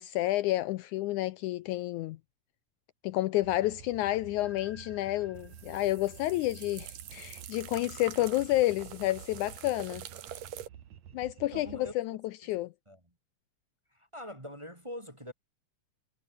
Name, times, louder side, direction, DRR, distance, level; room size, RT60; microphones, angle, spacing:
voice 1, 0.0-2.2 3.0-10.1 11.1-12.2 12.5-12.7, left 16 dB, 75° left, 1.9 m, -30 dB
sound 1, 3.4-12.0, right 9 dB, 60° right, 2.9 m, -50 dB
sound 2, 4.4-7.4, left 2 dB, 30° left, 6.4 m, -58 dB
sound 3, 5.4-10.7, right 11 dB, 80° right, 3.3 m, -46 dB
voice 2, 11.5-11.9 12.4-12.5 12.9-13.0 13.9-15.3, left 1 dB, 10° right, 2.5 m, -43 dB
omnidirectional pair, 3.8 m